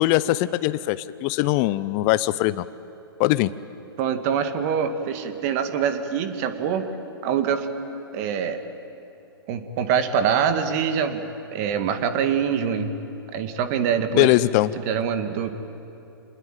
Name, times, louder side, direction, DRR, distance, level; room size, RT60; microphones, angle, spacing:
voice 1, 0.0-2.6 3.2-3.5 14.1-14.7, left 17 dB, 35° left, 15 dB, 0.7 m, -21 dB
voice 2, 4.0-6.9 7.2-7.7 8.1-8.6 9.5-11.2 11.5-12.9 13.3-14.3 14.9-15.5, right 7 dB, 40° right, 8 dB, 2.0 m, -24 dB
26.5 x 20.5 x 9.2 m, 2.9 s
hypercardioid pair, 125°, 13 cm